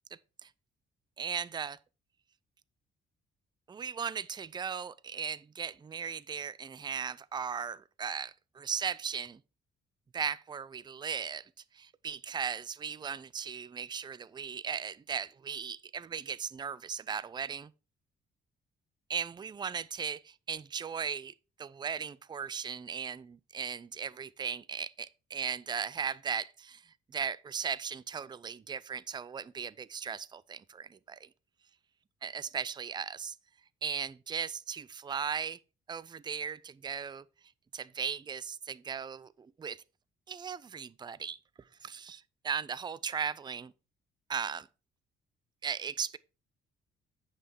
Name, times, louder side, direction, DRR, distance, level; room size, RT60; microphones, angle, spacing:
voice 1, 1.2-1.8 3.7-9.4 10.1-17.7 19.1-31.3 32.2-33.4 33.8-35.6 35.9-37.2 37.7-39.8 40.3-41.4 41.8-43.7 44.3-44.7 45.6-46.2, right 6 dB, 20° right, 0.4 m, -37 dB
9.8 x 5.7 x 4.5 m
cardioid pair, 90°, 20 cm